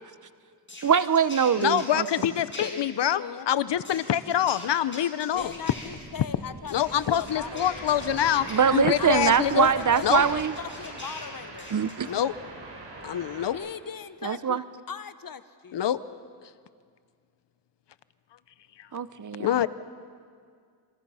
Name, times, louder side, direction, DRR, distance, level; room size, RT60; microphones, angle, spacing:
sound 1, 0.7-2.7 3.8-5.9 6.7-8.7 9.2-11.2 11.6-12.1, left 2 dB, 25° left, 7.9 m, -43 dB
voice 1, 0.8-2.1 8.5-10.5 11.7-12.1 14.2-14.6 18.9-19.5, right 7 dB, 45° right, 15 dB, 0.8 m, -23 dB
voice 2, 1.6-3.2 3.5-5.5 6.7-9.7 10.0-10.2 12.0-12.3 13.0-13.6 15.7-16.0 16.4-16.5 18.8-18.9 19.4-19.7, left 10 dB, 75° left, 15 dB, 0.8 m, -25 dB
voice 3, 2.6-3.5 5.3-7.9 9.0-11.7 13.5-15.8, left 7 dB, 50° left, 12 dB, 1.2 m, -39 dB
sound 2, 5.4-10.5, right 3 dB, 20° right, 1.1 m, -47 dB
sound 3, 7.3-13.5, right 2 dB, 85° right, 5.2 m, -41 dB
28.0 x 25.0 x 5.7 m, 2.1 s
cardioid pair, 70°, 42 cm